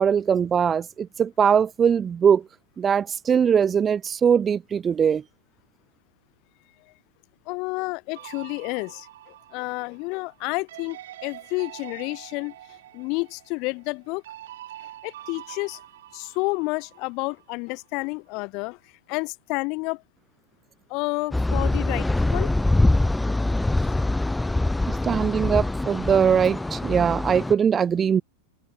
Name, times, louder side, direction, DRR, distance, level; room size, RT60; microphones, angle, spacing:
voice 1, 0.0-2.4 2.8-5.2 24.9-28.2, right 7 dB, 25° right, 0.4 m, -21 dB
voice 2, 7.5-12.5 12.9-14.2 14.8-15.8 16.1-18.8 19.1-20.0 20.9-22.5 24.0-24.1 25.0-25.1, left 28 dB, 50° left, 1.3 m, -30 dB
sound 1, 8.1-17.5, right 13 dB, 70° right, 3.7 m, -45 dB
sound 2, 21.3-27.5, left 2 dB, 5° left, 0.7 m, -24 dB
open air
hypercardioid pair, 95°, 0 cm